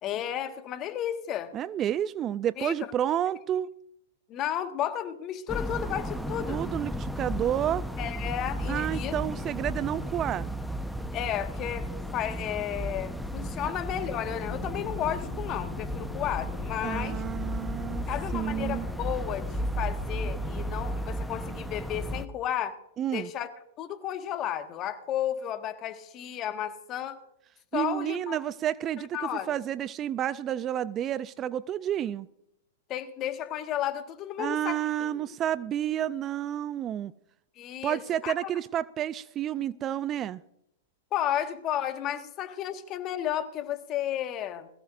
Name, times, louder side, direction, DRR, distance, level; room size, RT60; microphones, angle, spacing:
voice 1, 0.0-1.5 2.6-2.7 4.3-6.6 8.0-9.1 11.1-11.9 12.1-17.2 18.1-22.8 23.1-23.5 23.8-27.2 27.7-28.4 29.0-29.5 32.9-35.2 37.6-38.5 41.1-44.7, left 11 dB, 35° left, 1.5 m, -33 dB
voice 2, 1.5-3.7 6.5-7.9 8.7-10.5 16.8-18.1 18.3-18.9 23.0-23.3 27.7-32.3 34.4-37.1 37.8-40.4, right 11 dB, 30° right, 0.4 m, -30 dB
sound 1, 5.5-22.3, equal, ahead, 0.9 m, -34 dB
sound 2, 14.3-21.6, left 6 dB, 65° left, 1.4 m, -46 dB
21.0 x 15.5 x 2.5 m
hypercardioid pair, 105°, 0 cm